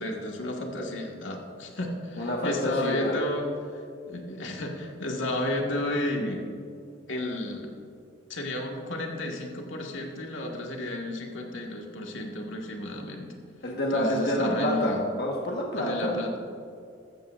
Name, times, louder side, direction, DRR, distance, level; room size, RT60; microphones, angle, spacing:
voice 1, 0.0-3.5 3.7-6.5 7.1-7.7 8.3-13.3 13.9-15.0 15.7-16.4, left 1 dB, 75° left, 0 dB, 1.8 m, -32 dB
voice 2, 2.2-3.2 13.6-16.1, left 1 dB, 55° left, -2 dB, 1.4 m, -28 dB
14.5 x 14.0 x 2.5 m, 2.5 s
head